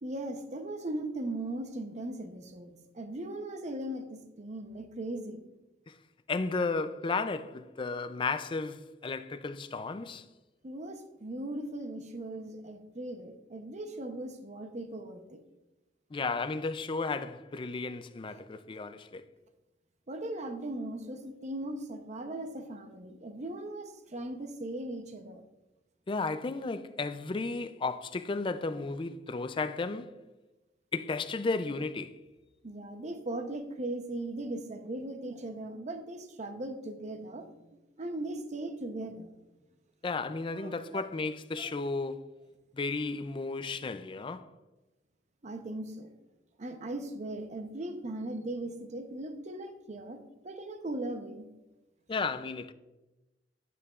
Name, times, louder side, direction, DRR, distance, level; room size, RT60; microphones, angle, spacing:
voice 1, 0.0-5.5 10.6-15.4 18.3-18.4 20.1-25.4 32.6-37.5 38.0-39.3 40.5-41.0 41.6-41.7 45.4-46.1 46.6-51.5, right 1 dB, 40° right, 0.7 m, -38 dB
voice 2, 6.3-10.2 16.1-19.2 26.1-30.2 30.9-32.2 40.0-42.3 42.7-44.5 52.1-52.7, left 3 dB, 30° left, 0.4 m, -34 dB
9.4 x 7.9 x 2.4 m
head